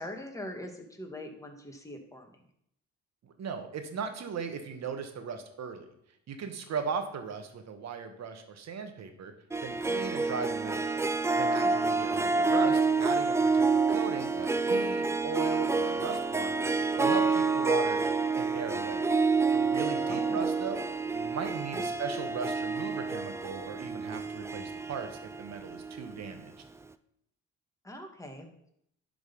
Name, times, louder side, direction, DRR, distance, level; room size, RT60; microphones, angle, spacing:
voice 1, 0.0-2.3 20.0-20.4 21.7-21.8 27.8-28.5, left 1 dB, 10° left, 3 dB, 1.7 m, -42 dB
voice 2, 3.2-5.9 6.3-9.3 9.6-10.8 11.3-16.7 17.0-18.1 18.3-19.1 19.5-20.8 21.1-26.5, right 5 dB, 60° right, 7 dB, 1.4 m, -38 dB
Harp, 9.5-26.3, right 4 dB, 10° right, 0.4 m, -28 dB
11.5 x 4.0 x 5.4 m, 0.73 s
cardioid pair, 90°, 30 cm